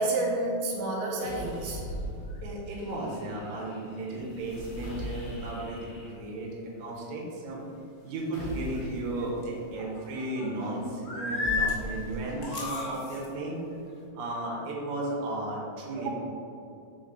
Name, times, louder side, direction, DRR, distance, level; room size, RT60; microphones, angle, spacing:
voice 1, 0.0-2.0 16.0-16.1, right 2 dB, 80° right, -1 dB, 2.6 m, -29 dB
sound 1, 1.2-2.8 4.2-5.8 8.3-9.2 11.4-12.6, right 1 dB, 90° left, 3.0 m, -38 dB
sound 2, 1.3-1.7 2.2-2.4 2.7-6.1 8.5-9.3 9.7-10.7 11.0-11.7 12.2-12.9 13.7-13.9, left 4 dB, 50° left, 2.3 m, -36 dB
voice 2, 2.4-6.5 6.8-7.6 8.0-13.6 14.1-16.1, right 1 dB, 65° right, -4 dB, 2.1 m, -34 dB
sound 3, 7.5-13.3, left 3 dB, 70° left, 2.6 m, -51 dB
6.2 x 4.1 x 3.9 m, 2.6 s
omnidirectional pair, 4.4 m